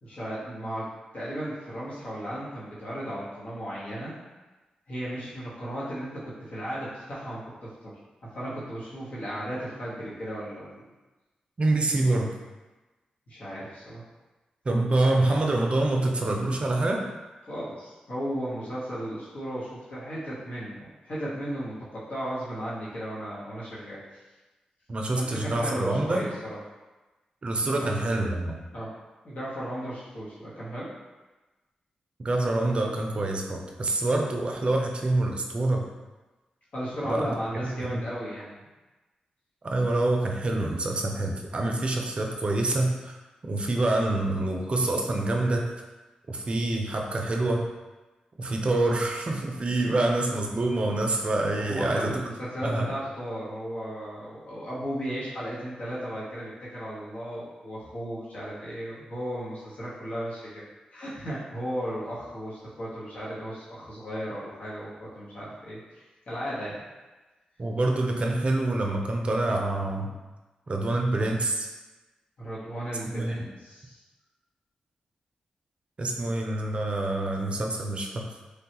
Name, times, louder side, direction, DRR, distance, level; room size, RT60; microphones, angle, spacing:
voice 1, 0.0-4.1 4.9-7.9 8.2-10.8 13.3-14.0 17.5-24.0 25.2-26.6 27.7-27.9 28.7-28.9 29.2-30.9 36.7-38.5 48.5-48.6 49.8-50.0 51.6-60.6 60.9-66.8 72.4-74.0, equal, 65° left, -9 dB, 1.0 m, -35 dB
voice 2, 11.6-12.3 14.6-17.0 24.9-26.2 27.4-28.6 32.2-35.8 37.1-37.4 37.8-38.0 39.6-43.2 43.5-45.7 46.3-47.7 48.4-52.1 52.6-52.9 67.6-70.2 70.7-71.7 73.1-73.5 76.0-78.2, right 2 dB, 45° right, 1 dB, 0.5 m, -26 dB
3.2 x 2.3 x 2.9 m, 1.2 s
cardioid pair, 65°, 3 cm